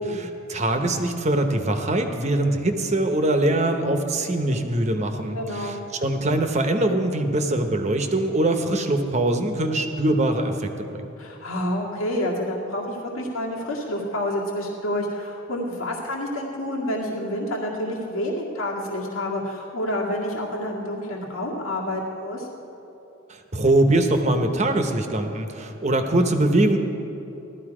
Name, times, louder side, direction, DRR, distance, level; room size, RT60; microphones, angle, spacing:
voice 1, 0.0-11.1 23.3-26.8, right 1 dB, 35° right, 6 dB, 0.9 m, -23 dB
voice 2, 5.3-5.8 11.2-22.5, left 1 dB, 90° left, -3 dB, 2.1 m, -28 dB
16.0 x 13.0 x 4.9 m, 3.0 s
head